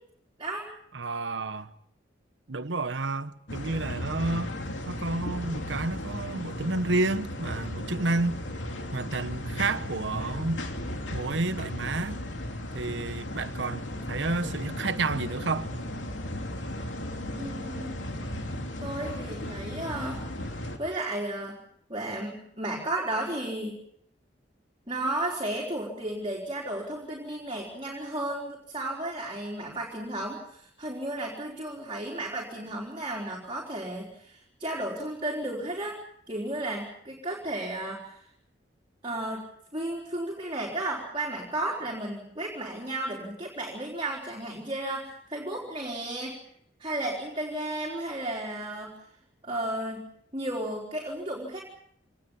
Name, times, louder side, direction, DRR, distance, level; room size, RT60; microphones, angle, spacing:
voice 1, 0.9-1.7 2.5-4.6 4.9-8.4 8.9-10.6 11.1-12.2 12.7-15.7, right 2 dB, 70° right, 1.2 m, -30 dB
sound 1, 3.5-20.8, left 1 dB, 75° left, 3.0 m, -36 dB
voice 2, 17.3-18.0 18.8-20.2 20.8-21.6 21.9-23.8 24.9-36.0 36.3-38.2 39.0-39.5 39.7-46.3 46.8-49.0 49.4-51.6, right 1 dB, 30° right, 4.0 m, -33 dB
26.0 x 19.5 x 7.2 m
head